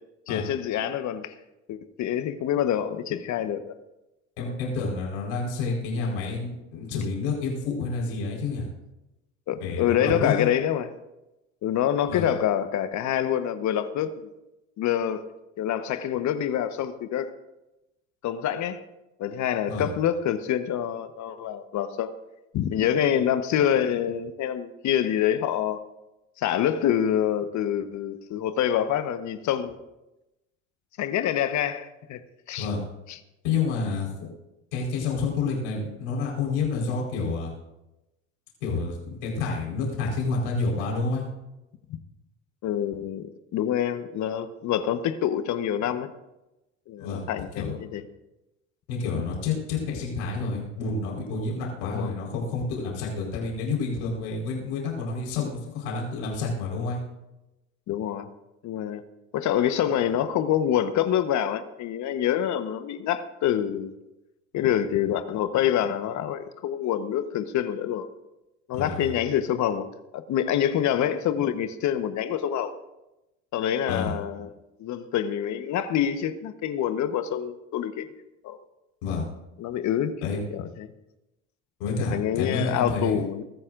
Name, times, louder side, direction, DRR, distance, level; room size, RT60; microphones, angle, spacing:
voice 1, 0.3-1.3 1.7-3.6 9.5-10.9 11.6-14.3 14.8-15.2 15.6-17.3 18.2-18.8 19.2-22.1 22.5-25.8 26.4-29.8 31.0-32.2 32.5-32.7 33.1-33.2 41.9-42.0 42.6-46.1 46.9-48.0 51.8-52.1 57.9-58.3 58.6-59.0 59.3-63.9 64.5-68.1 68.7-69.9 70.1-72.7 73.5-74.5 74.8-78.1 78.4-78.6 79.6-80.2 80.5-80.9 82.0-83.4, left 10 dB, 50° left, 10 dB, 1.2 m, -26 dB
voice 2, 4.4-8.7 9.6-10.5 12.1-12.3 19.7-19.9 32.6-32.8 33.4-34.3 34.7-37.5 38.6-41.2 47.0-47.2 47.6-47.8 48.9-57.0 68.7-69.1 73.9-74.1 79.0-79.3 80.2-80.4 81.8-83.2, left 4 dB, 75° left, -2 dB, 4.6 m, -29 dB
23.5 x 14.0 x 2.6 m, 0.96 s
hypercardioid pair, 75°, 36 cm